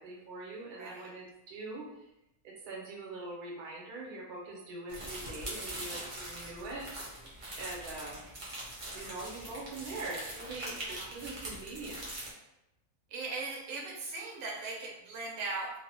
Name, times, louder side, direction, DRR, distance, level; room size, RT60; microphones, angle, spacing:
voice 1, 0.0-1.9 2.4-6.9 7.6-8.3 8.9-12.1, right 2 dB, 90° right, -3 dB, 1.3 m, -43 dB
voice 2, 0.8-1.1 10.7-11.1 13.1-15.7, right 3 dB, 70° right, -2 dB, 0.9 m, -39 dB
sound 1, 4.9-12.3, right 1 dB, 45° right, 0.7 m, -42 dB
2.8 x 2.0 x 2.7 m, 0.90 s
omnidirectional pair, 1.6 m